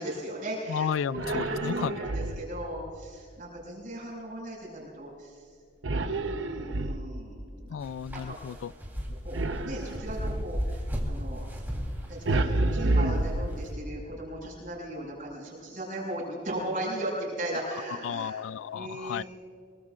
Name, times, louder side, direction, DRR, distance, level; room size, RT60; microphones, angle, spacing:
voice 1, 0.0-5.4 5.9-7.7 8.1-8.4 9.0-10.8 11.1-11.5 12.1-18.3 18.7-19.3, right 1 dB, 45° right, -4 dB, 5.5 m, -37 dB
voice 2, 0.7-1.9 7.7-8.7 18.0-19.2, left 7 dB, 75° left, 21 dB, 0.3 m, -33 dB
sound 1, 1.1-2.7 5.8-7.4 9.3-10.6 12.3-14.0, right 2 dB, 70° right, 0.9 m, -29 dB
sound 2, 7.8-13.7, equal, 10° right, 3.4 m, -36 dB
24.0 x 22.5 x 2.5 m, 2.3 s
head